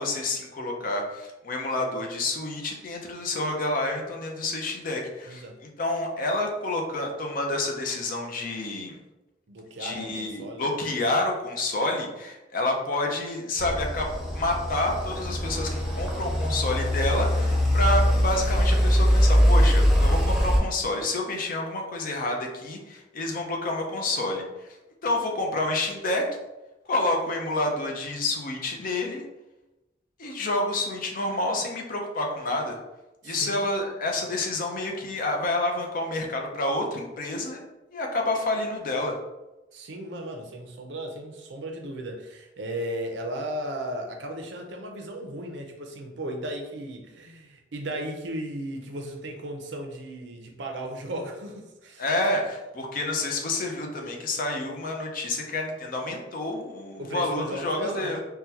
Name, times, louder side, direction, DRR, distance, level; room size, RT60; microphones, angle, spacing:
voice 1, 0.0-9.0 9.8-14.1 14.3-24.7 25.0-26.3 26.9-29.2 30.2-32.8 33.2-37.6 37.9-39.1 52.0-58.2, left 2 dB, 50° left, 1 dB, 0.6 m, -29 dB
voice 2, 5.2-5.6 9.5-10.7 33.2-33.6 39.7-52.0 57.0-58.2, right 1 dB, 85° right, 3 dB, 0.6 m, -35 dB
sound 1, 13.6-20.6, equal, ahead, 0.6 m, -22 dB
3.7 x 2.2 x 2.8 m, 1.0 s
head